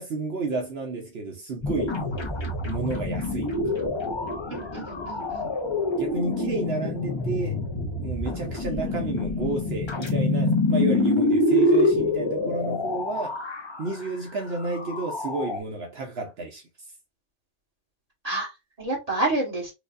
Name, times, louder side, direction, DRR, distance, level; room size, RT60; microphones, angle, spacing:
voice 1, 0.0-2.0 2.6-3.5 6.0-7.6 8.0-13.4 13.8-16.6, right 3 dB, 60° right, 0.9 m, -31 dB
sound 1, 1.6-14.0 14.5-15.6, left 2 dB, 30° left, 0.6 m, -26 dB
voice 2, 4.5-5.5 18.2-19.7, right 2 dB, 30° right, 1.7 m, -29 dB
4.6 x 2.4 x 2.5 m
omnidirectional pair, 1.2 m